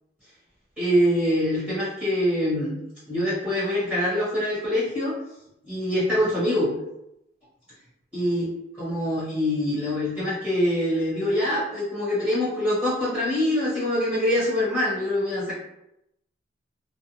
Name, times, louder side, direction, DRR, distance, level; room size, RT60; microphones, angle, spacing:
voice 1, 0.8-2.8 3.1-5.2 5.7-6.7 8.1-8.5 8.8-15.5, left 1 dB, 10° right, -11 dB, 1.2 m, -24 dB
2.5 x 2.2 x 2.9 m, 0.84 s
head